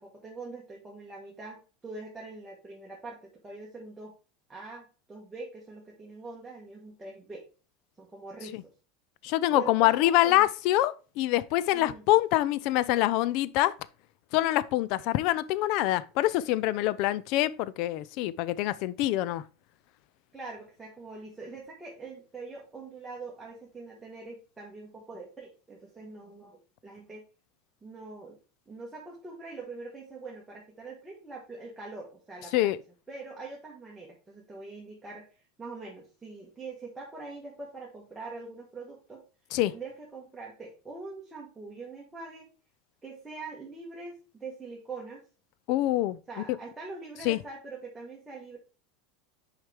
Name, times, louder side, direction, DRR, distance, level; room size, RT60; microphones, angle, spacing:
voice 1, 0.0-4.1 4.5-7.5 8.0-8.7 9.5-10.5 11.7-12.0 20.3-27.2 27.8-28.4 28.7-32.7 33.1-35.2 35.6-39.2 39.7-42.5 43.0-45.3 46.3-48.6, right 3 dB, 10° right, 1.3 m, -43 dB
voice 2, 9.2-13.7 14.3-19.4 32.5-32.8 39.5-39.7 45.7-46.2 47.2-47.4, left 15 dB, 55° left, 0.4 m, -25 dB
6.4 x 4.8 x 3.4 m
supercardioid pair, 145°, 0 cm